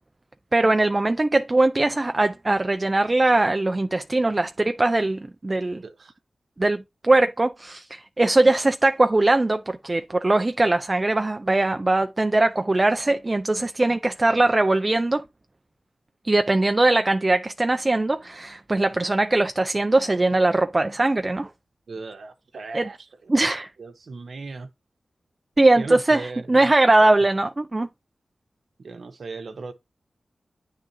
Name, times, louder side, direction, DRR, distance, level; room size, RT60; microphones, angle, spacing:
voice 1, 0.5-5.8 6.6-15.2 16.2-21.5 22.7-22.9 23.3-23.7 25.6-27.9, right 2 dB, 30° right, 0.4 m, -21 dB
voice 2, 5.8-6.1 21.9-23.3 23.8-24.7 25.8-26.7 27.0-27.1 28.8-29.7, right 3 dB, 70° right, 0.9 m, -37 dB
9.6 x 3.7 x 2.7 m
wide cardioid pair, 70°, 0 cm